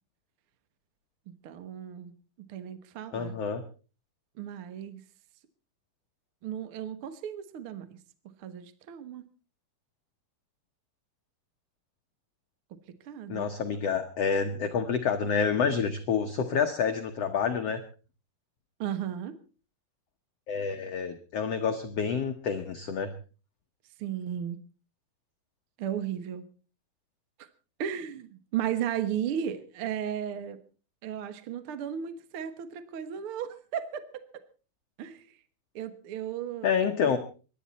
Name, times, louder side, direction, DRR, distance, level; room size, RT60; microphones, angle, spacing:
voice 1, 1.3-2.1 2.5-3.3 4.3-5.0 6.4-7.9 8.4-9.3 12.7-12.8 13.0-13.5 18.8-19.4 24.0-24.6 25.8-26.4 27.4-27.5 27.8-30.6 31.0-34.3 35.0-35.4 35.7-37.2, right 9 dB, 75° right, 11 dB, 1.2 m, -35 dB
voice 2, 3.1-3.6 13.3-17.8 20.5-23.1 36.6-37.2, left 6 dB, 80° left, 6 dB, 1.4 m, -28 dB
24.5 x 12.0 x 4.1 m, 0.36 s
omnidirectional pair, 4.5 m